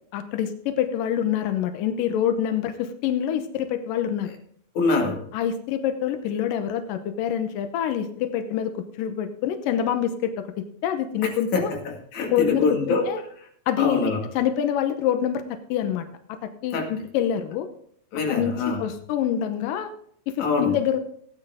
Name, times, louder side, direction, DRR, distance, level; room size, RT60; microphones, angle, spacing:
voice 1, 0.1-4.3 5.3-11.7 12.3-13.2 13.7-17.7 18.3-19.9 20.3-21.0, left 9 dB, 85° left, 8 dB, 1.9 m, -26 dB
voice 2, 4.7-5.3 11.5-13.1 13.8-14.3 16.7-16.9 18.1-18.8 20.4-20.8, left 4 dB, 50° left, 1 dB, 3.1 m, -24 dB
16.5 x 9.9 x 3.7 m, 0.64 s
omnidirectional pair, 5.2 m